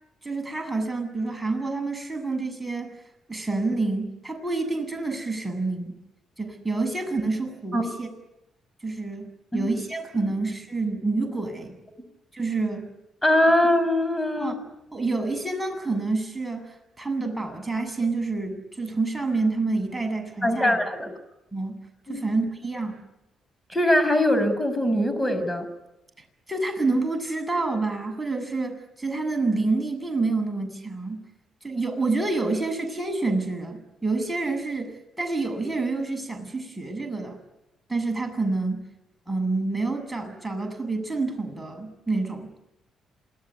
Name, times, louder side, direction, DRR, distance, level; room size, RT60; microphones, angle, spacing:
voice 1, 0.2-3.0 3.3-6.0 6.4-8.1 8.8-11.8 12.3-12.9 14.4-14.5 14.9-20.8 21.5-21.8 22.1-23.0 26.5-31.2 31.6-37.4 37.9-38.8 39.3-42.5, right 3 dB, 5° right, 4 dB, 7.9 m, -28 dB
voice 2, 13.2-14.6 20.4-21.1 22.1-22.3 23.7-25.7, left 1 dB, 10° left, 10 dB, 6.5 m, -22 dB
28.0 x 19.0 x 9.8 m, 0.90 s
cardioid pair, 90°, 0 cm